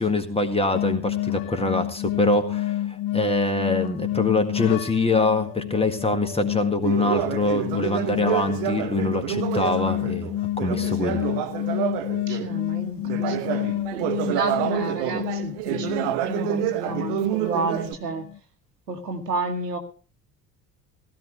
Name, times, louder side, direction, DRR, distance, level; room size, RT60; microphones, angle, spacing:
voice 1, 0.0-11.3, left 2 dB, 10° left, 6 dB, 1.8 m, -24 dB
sound 1, 0.7-18.4, left 14 dB, 45° left, 0.7 m, -30 dB
Conversation, 6.8-12.6 13.0-17.9, right 12 dB, 55° right, 1.2 m, -28 dB
voice 2, 12.3-13.4 13.9-18.3 18.9-19.8, right 3 dB, 85° right, 6 dB, 1.5 m, -31 dB
16.0 x 13.5 x 3.2 m, 0.38 s
figure-of-eight pair, 60°, 47 cm